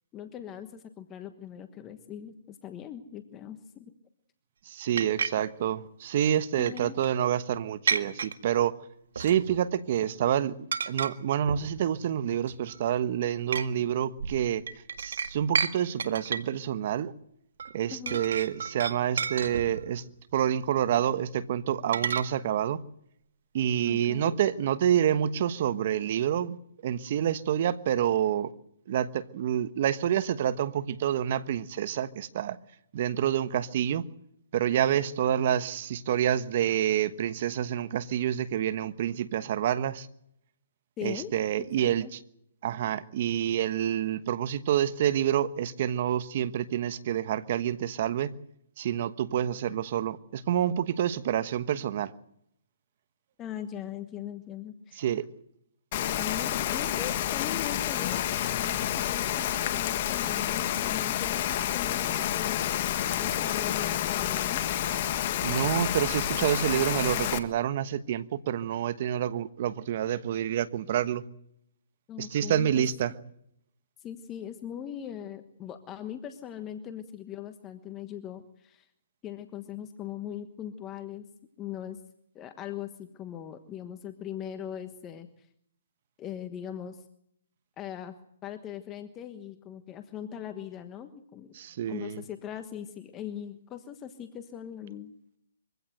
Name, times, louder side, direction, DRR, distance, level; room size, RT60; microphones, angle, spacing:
voice 1, 0.1-3.9 6.5-7.0 17.9-18.3 23.9-24.4 41.0-41.3 41.8-42.1 53.4-55.1 56.1-58.2 58.5-64.6 66.7-66.9 72.1-72.8 74.0-78.9 79.2-81.3 81.6-82.0 82.3-85.5 86.2-87.0 87.8-88.2 88.4-91.6 91.9-95.1, left 10 dB, 20° left, 1.3 m, -40 dB
voice 2, 4.7-8.8 9.2-10.6 10.9-14.6 15.0-17.1 17.7-20.1 20.3-22.8 23.5-26.6 26.8-28.5 28.9-32.6 32.9-34.1 34.5-40.1 41.0-42.2 42.6-48.3 48.8-52.1 55.0-55.3 65.4-71.2 72.2-73.1 91.5-92.2, right 10 dB, 50° right, 1.2 m, -28 dB
sound 1, 5.0-5.3 6.7-7.1 7.9-8.3 9.2-9.6 9.9-10.2 10.7-11.1 11.5-11.8 12.3-12.8 13.5-13.7 14.2-15.7 16.0-16.5 17.6-17.7 18.1-19.9 21.9-22.2, right 6 dB, 75° right, 1.8 m, -31 dB
Rain, 55.9-67.4, left 11 dB, 40° left, 1.6 m, -29 dB
23.5 x 16.5 x 7.9 m
hypercardioid pair, 145°, 0 cm